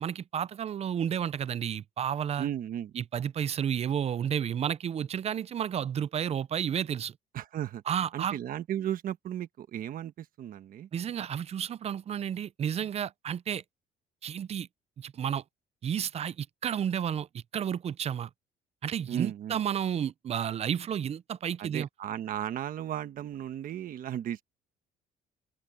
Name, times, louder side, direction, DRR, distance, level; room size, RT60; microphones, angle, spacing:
voice 1, 0.0-2.5 3.0-7.1 7.9-8.4 10.9-13.6 14.2-14.7 15.0-15.4 15.8-18.3 18.8-21.9, right 9 dB, 40° right, 0.5 m, -31 dB
voice 2, 2.4-2.9 7.3-7.8 8.1-10.9 19.1-19.6 21.6-24.4, right 11 dB, 55° right, 1.2 m, -35 dB
open air
cardioid pair, 110°, 17 cm